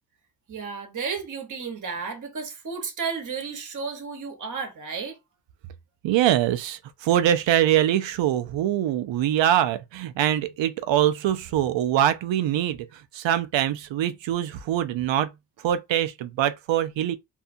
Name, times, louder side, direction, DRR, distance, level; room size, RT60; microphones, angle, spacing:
voice 1, 0.5-5.2, right 5 dB, 45° right, 1.0 m, -33 dB
voice 2, 6.0-15.3 15.6-17.2, right 11 dB, 85° right, 0.5 m, -23 dB
2.6 x 2.3 x 2.5 m
cardioid pair, 75°, 44 cm